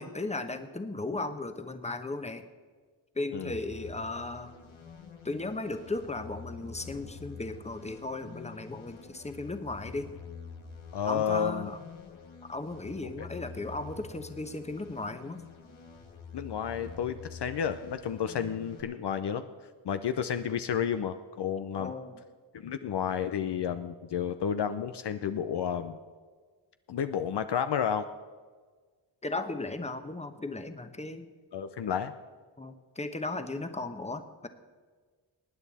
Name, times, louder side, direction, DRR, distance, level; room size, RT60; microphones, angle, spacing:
voice 1, 0.0-2.4 3.1-4.5 5.2-10.1 11.1-11.8 12.5-15.4 21.8-22.2 29.2-31.3 32.6-34.5, left 2 dB, 15° left, 8 dB, 1.1 m, -36 dB
sound 1, 3.5-18.8, left 5 dB, 85° left, 1.8 m, -47 dB
voice 2, 10.9-11.7 13.0-13.1 16.3-19.4 19.8-21.9 22.5-26.0 26.9-28.0 31.5-32.1, left 8 dB, 60° left, 9 dB, 0.7 m, -31 dB
19.5 x 9.0 x 4.2 m, 1.5 s
cardioid pair, 60°, 47 cm